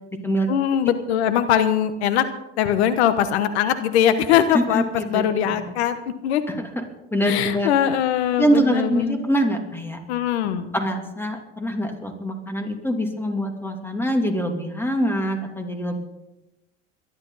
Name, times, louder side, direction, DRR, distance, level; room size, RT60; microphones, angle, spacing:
voice 1, 0.5-2.2 2.6-4.8 5.1-6.0 6.2-6.4 7.3-9.2 10.1-10.7, left 10 dB, 80° left, 11 dB, 1.2 m, -21 dB
voice 2, 4.5-5.2 5.7-5.8 6.5-6.8 7.1-7.7 8.4-10.0 10.4-16.0, equal, 5° left, 4 dB, 3.0 m, -24 dB
22.5 x 12.0 x 4.1 m, 0.95 s
supercardioid pair, 95°, 32 cm